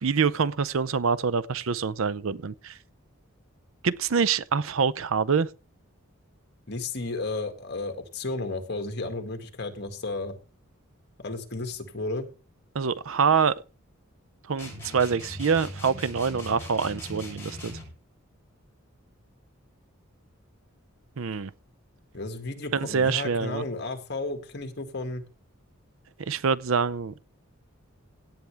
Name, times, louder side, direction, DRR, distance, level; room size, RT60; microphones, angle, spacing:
voice 1, 0.0-2.8 3.8-5.5 12.7-13.5 14.5-17.8 21.2-21.5 22.7-23.6 26.2-27.2, right 5 dB, 70° right, 0.6 m, -25 dB
voice 2, 6.7-10.4 11.2-12.3 22.1-25.3, left 2 dB, 50° left, 2.0 m, -33 dB
sound 1, 14.6-18.0, left 1 dB, 10° left, 6.9 m, -40 dB
17.0 x 8.6 x 3.4 m
head